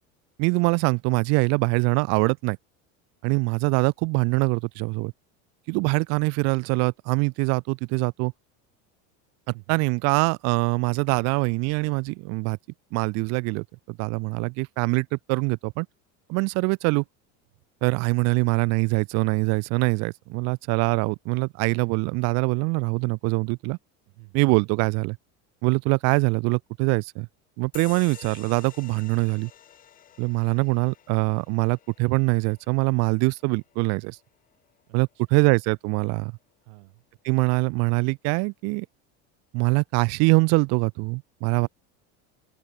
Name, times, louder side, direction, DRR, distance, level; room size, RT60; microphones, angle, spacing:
voice 1, 0.4-2.6 3.2-5.1 5.7-8.3 9.7-12.6 12.9-15.9 16.3-17.0 17.8-23.8 24.3-25.2 25.6-27.3 27.6-29.5 30.2-34.2 34.9-36.3 37.2-38.8 39.5-41.7, right 30 dB, 45° right, 1.1 m, -23 dB
voice 2, 9.5-9.9 17.5-17.6 24.1-24.5 34.9-35.5 36.6-37.0, right 31 dB, 65° right, 5.9 m, -50 dB
sound 1, 27.7-34.8, left 10 dB, 25° left, 2.8 m, -50 dB
open air
cardioid pair, 180°, 35 cm